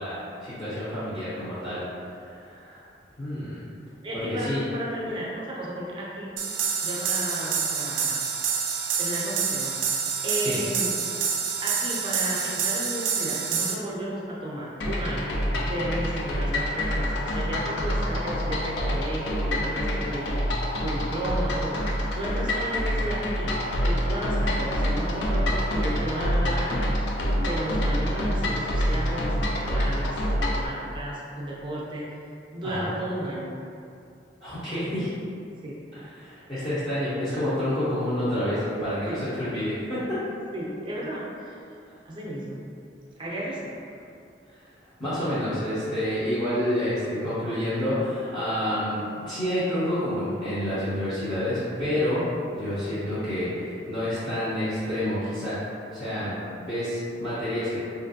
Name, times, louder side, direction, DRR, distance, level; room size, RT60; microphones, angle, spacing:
voice 1, 0.0-1.8 2.2-2.8 3.2-3.6 4.1-4.6 10.4-10.6 32.6-32.9 34.4-35.1 35.9-40.2 45.0-49.0 49.3-52.2 52.5-55.6 55.9-56.3 56.6-57.8, left 1 dB, 25° left, -15 dB, 0.6 m, -28 dB
voice 2, 4.0-6.4 6.8-8.2 9.0-10.0 10.2-11.0 11.6-21.8 22.1-23.5 23.8-26.9 27.5-32.0 32.5-33.6 35.6-35.8 39.1-39.2 40.5-41.6 42.0-42.6 43.2-43.6, right 1 dB, 25° right, -5 dB, 0.5 m, -33 dB
sound 1, 6.4-13.7, right 6 dB, 85° right, 0.4 m, -27 dB
sound 2, 14.8-30.7, equal, 75° left, 0.4 m, -26 dB
3.2 x 2.5 x 2.6 m, 2.5 s
head